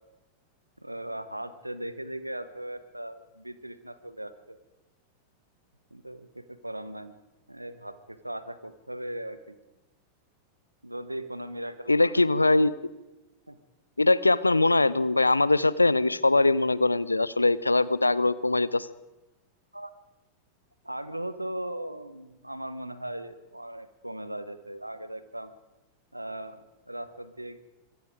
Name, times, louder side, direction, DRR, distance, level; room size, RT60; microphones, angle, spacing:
voice 1, 0.8-4.6 5.9-7.1 7.5-9.6 10.8-12.2 12.5-12.7 13.5-13.6 19.7-19.9 20.8-25.5 26.1-27.6, right 1 dB, 85° right, 12 dB, 1.4 m, -38 dB
voice 2, 11.9-12.7 14.0-18.9, left 2 dB, 80° left, 20 dB, 0.7 m, -22 dB
25.5 x 23.0 x 5.0 m, 1.0 s
figure-of-eight pair, 90°, 0 cm